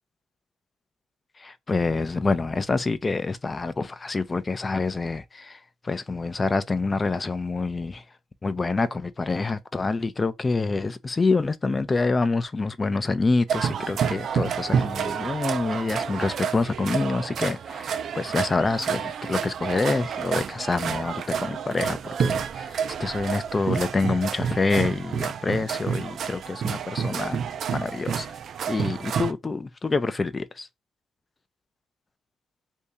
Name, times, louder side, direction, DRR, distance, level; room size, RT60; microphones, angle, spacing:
voice 1, 1.4-8.0 8.4-27.4 27.7-28.3 28.7-30.7, left 3 dB, 25° left, 0.5 m, -27 dB
sound 1, 13.5-29.3, right 7 dB, 60° right, 0.4 m, -29 dB
2.7 x 2.7 x 3.3 m
cardioid pair, 90°, 0 cm